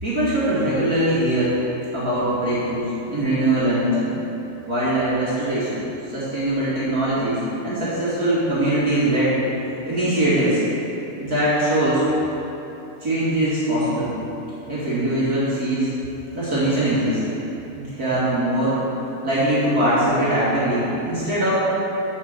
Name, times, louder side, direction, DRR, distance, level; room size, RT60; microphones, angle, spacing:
voice 1, 0.0-1.6 1.9-4.1 4.7-5.8 6.1-9.4 9.9-10.6 11.1-12.0 13.0-14.1 14.7-15.9 16.3-17.2 17.7-18.8 19.2-21.5, right 1 dB, 45° right, -11 dB, 2.3 m, -21 dB
8.6 x 5.4 x 6.5 m, 3.0 s
omnidirectional pair, 2.4 m